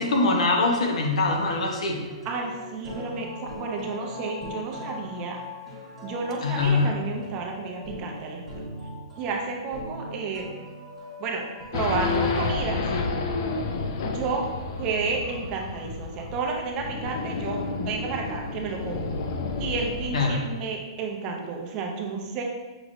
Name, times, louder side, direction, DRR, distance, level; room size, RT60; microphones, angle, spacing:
voice 1, 0.0-2.0 6.4-6.9 20.1-20.4, left 3 dB, 80° left, 1 dB, 0.9 m, -23 dB
sound 1, 1.3-11.7, left 1 dB, 5° left, 1.2 m, -40 dB
voice 2, 2.2-5.4 6.0-8.5 9.2-10.4 11.2-11.4 11.7-12.8 14.0-14.4 14.8-19.1 19.6-22.4, right 4 dB, 25° right, 1 dB, 0.5 m, -31 dB
Race car auto racing / Idling / Accelerating revving vroom, 11.7-20.3, left 3 dB, 40° left, 0.4 m, -30 dB
6.0 x 3.0 x 2.6 m, 1.2 s
hypercardioid pair, 165°, 3 cm